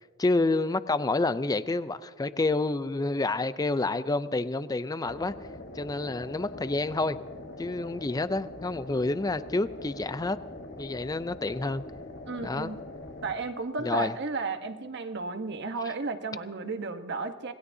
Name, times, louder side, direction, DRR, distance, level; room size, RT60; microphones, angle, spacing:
voice 1, 0.2-5.3 5.7-7.2 7.6-10.4 10.8-11.8 12.4-12.7 13.8-14.1, left 2 dB, 20° left, 0.4 m, -28 dB
sound 1, 5.0-13.3, left 2 dB, 55° left, 1.3 m, -43 dB
voice 2, 12.3-12.8 13.2-17.5, right 3 dB, 55° right, 1.1 m, -33 dB
27.0 x 19.5 x 2.7 m
head